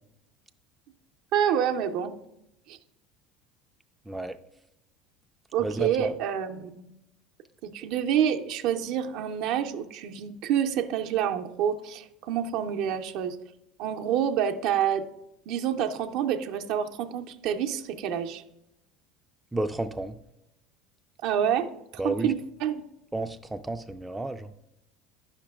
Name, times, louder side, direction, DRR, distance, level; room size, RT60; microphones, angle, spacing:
voice 1, 1.3-2.1 2.7-2.8 5.5-6.8 7.6-13.4 13.8-15.1 15.5-18.4 21.2-21.7 21.9-22.8, right 9 dB, 65° right, 6 dB, 0.5 m, -27 dB
voice 2, 4.1-4.4 5.6-6.1 19.5-20.2 22.0-22.3 23.1-24.5, right 2 dB, 10° right, 7 dB, 0.3 m, -31 dB
9.8 x 5.8 x 2.3 m, 0.85 s
supercardioid pair, 90°, 0 cm